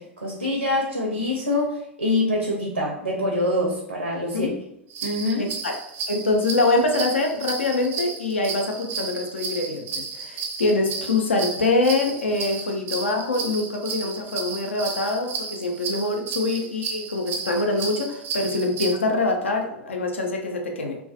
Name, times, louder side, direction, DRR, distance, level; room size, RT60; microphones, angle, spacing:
voice 1, 0.0-4.5 5.0-5.5, left 1 dB, 90° right, -3 dB, 0.5 m, -25 dB
sound 1, 4.9-18.9, right 5 dB, 35° right, 0.4 m, -33 dB
voice 2, 5.4-5.8 6.1-21.0, left 2 dB, 75° left, 2 dB, 0.5 m, -24 dB
2.3 x 2.2 x 2.5 m, 0.80 s
figure-of-eight pair, 90°, 7 cm